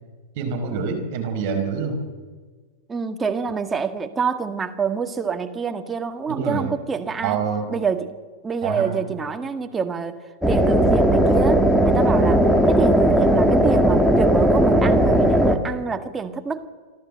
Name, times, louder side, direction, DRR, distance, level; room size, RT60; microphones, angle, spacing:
voice 1, 0.3-2.0 6.3-6.7 7.2-7.7 8.6-9.1, right 5 dB, 50° right, 5 dB, 4.6 m, -26 dB
voice 2, 2.9-7.4 7.7-8.2 8.4-10.2 10.5-16.7, right 5 dB, 15° right, 7 dB, 1.6 m, -26 dB
sound 1, 10.4-15.6, right 1 dB, 5° left, 2.1 m, -17 dB
28.5 x 12.5 x 7.8 m, 1.5 s
hypercardioid pair, 105°, 0 cm